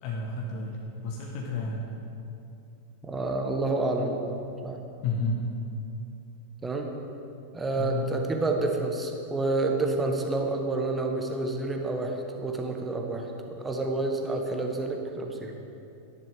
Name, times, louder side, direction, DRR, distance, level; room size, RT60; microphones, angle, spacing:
voice 1, 0.0-1.8 5.0-5.4 7.7-8.1, left 3 dB, 45° left, -2 dB, 1.4 m, -31 dB
voice 2, 3.0-4.8 6.6-6.9 7.5-15.5, right 2 dB, 15° right, 2 dB, 1.3 m, -29 dB
14.0 x 10.5 x 3.7 m, 2.7 s
figure-of-eight pair, 90°, 0 cm